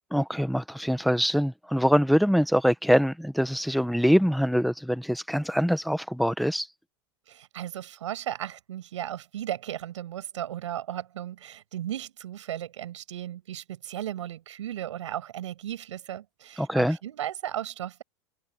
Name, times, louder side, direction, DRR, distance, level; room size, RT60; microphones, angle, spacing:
voice 1, 0.1-6.7 16.6-17.0, equal, ahead, 1.7 m, -24 dB
voice 2, 7.3-18.0, right 11 dB, 80° right, 7.9 m, -35 dB
hypercardioid pair, 105°, 15 cm